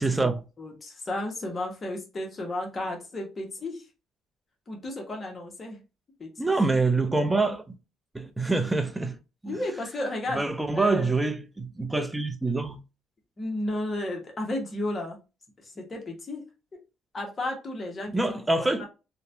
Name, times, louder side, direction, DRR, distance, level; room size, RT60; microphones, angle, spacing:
voice 1, 0.0-0.4 6.4-7.6 8.1-9.2 9.4-9.6 10.3-12.8 18.1-18.9, right 3 dB, 10° right, 0.5 m, -25 dB
voice 2, 0.6-3.8 4.7-5.8 6.2-6.3 9.5-10.4 10.7-11.1 13.4-15.2 15.6-16.4 17.1-18.9, left 1 dB, 35° left, 1.0 m, -33 dB
2.9 x 2.2 x 2.6 m
cardioid pair, 85°, 0 cm